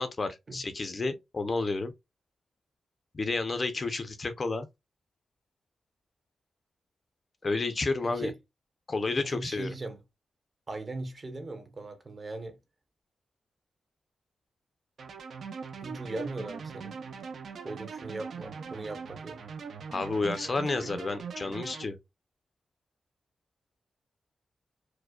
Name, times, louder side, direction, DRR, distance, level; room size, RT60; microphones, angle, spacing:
voice 1, 0.0-1.9 3.1-4.7 7.4-8.3 8.9-9.7 19.9-22.0, left 3 dB, 30° left, 0.5 m, -31 dB
voice 2, 8.0-8.4 9.1-10.0 10.7-12.6 15.8-16.9 17.6-19.4 20.8-20.9, right 2 dB, 30° right, 0.8 m, -39 dB
sound 1, 15.0-21.8, right 6 dB, 65° right, 0.6 m, -41 dB
4.7 x 2.1 x 2.2 m
wide cardioid pair, 160°, 0 cm